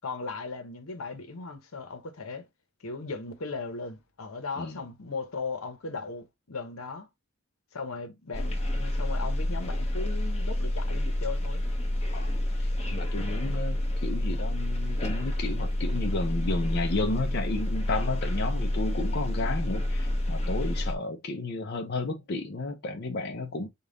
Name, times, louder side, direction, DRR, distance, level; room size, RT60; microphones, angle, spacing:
voice 1, 0.0-2.5 2.8-7.1 7.7-11.6, left 4 dB, 80° left, 0.9 m, -37 dB
sound 1, 8.3-20.9, left 1 dB, 30° left, 0.9 m, -29 dB
voice 2, 12.1-23.7, left 2 dB, 50° left, 0.6 m, -33 dB
5.4 x 2.4 x 3.8 m
head